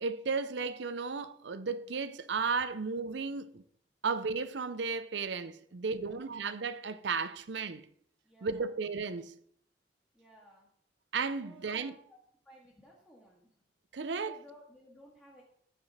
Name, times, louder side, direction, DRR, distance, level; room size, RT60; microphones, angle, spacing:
voice 1, 0.0-3.6 4.0-7.9 8.4-9.3 11.1-11.9 13.9-14.4, right 4 dB, 75° right, 0.6 m, -34 dB
voice 2, 6.0-6.4 8.2-8.7 10.1-10.7 11.4-12.2 12.5-13.5 14.3-15.4, equal, 10° left, 1.7 m, -57 dB
14.0 x 4.9 x 4.2 m
head